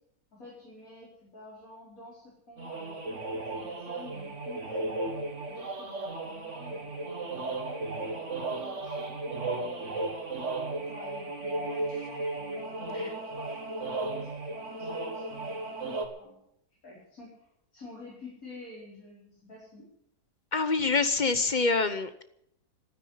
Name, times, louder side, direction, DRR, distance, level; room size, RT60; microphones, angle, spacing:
voice 1, 0.3-3.0 3.3-4.9 5.5-10.1 10.8-15.7 16.2-16.4 16.8-19.9, left 1 dB, 65° left, -6 dB, 5.4 m, -49 dB
sound 1, 2.6-16.1, right 2 dB, 50° right, 2.3 m, -35 dB
voice 2, 20.5-22.2, left 4 dB, 40° left, 11 dB, 0.8 m, -26 dB
12.5 x 9.8 x 9.9 m, 0.75 s
omnidirectional pair, 1.6 m